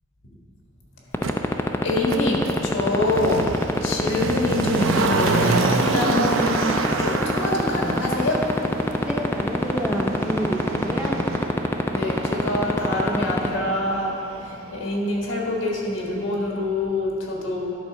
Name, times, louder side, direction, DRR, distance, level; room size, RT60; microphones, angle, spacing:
sound 1, 1.1-13.5, left 2 dB, 10° left, 0.4 m, -20 dB
Motor vehicle (road), 1.2-1.3 2.1-15.0 15.3-15.4, right 3 dB, 80° right, 0.6 m, -28 dB
voice 1, 1.8-3.5 3.8-6.6 7.0-8.4 11.9-17.7, left 1 dB, 75° left, -1 dB, 1.6 m, -26 dB
voice 2, 9.0-11.2, equal, 5° right, -2 dB, 0.9 m, -29 dB
11.0 x 4.2 x 5.8 m, 2.8 s
head